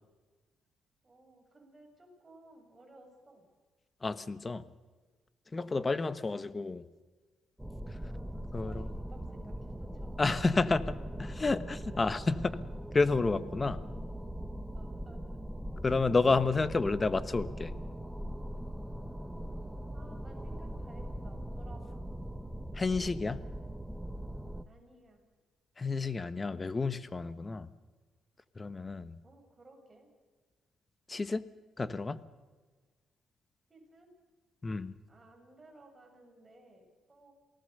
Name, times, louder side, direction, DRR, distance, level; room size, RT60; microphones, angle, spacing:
voice 1, 1.0-3.4 8.0-10.3 14.7-15.4 19.9-22.1 24.6-25.2 29.2-30.1 33.7-34.1 35.1-37.3, right 2 dB, 25° right, 2 dB, 7.3 m, -58 dB
voice 2, 4.0-4.7 5.5-6.9 8.5-8.9 10.2-12.6 12.9-13.8 15.8-17.7 22.7-23.4 25.8-27.7 28.5-29.1 31.1-31.4 31.8-32.2 34.6-35.0, left 3 dB, 25° left, 14 dB, 1.3 m, -30 dB
sound 1, 7.6-24.6, equal, 5° right, 1.3 m, -41 dB
28.0 x 18.5 x 6.8 m, 1.4 s
cardioid pair, 90°, 0 cm